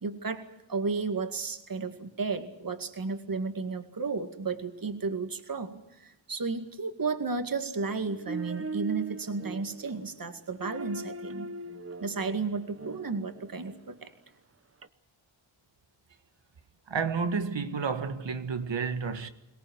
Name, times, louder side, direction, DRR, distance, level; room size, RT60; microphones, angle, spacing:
voice 1, 0.0-11.5 12.0-14.1, right 4 dB, 45° right, 2.2 m, -33 dB
sound 1, 8.0-13.8 14.8-14.9, right 3 dB, 30° right, 1.0 m, -40 dB
voice 2, 16.9-19.3, right 5 dB, 65° right, 1.8 m, -31 dB
23.5 x 18.0 x 9.5 m
cardioid pair, 65°, 47 cm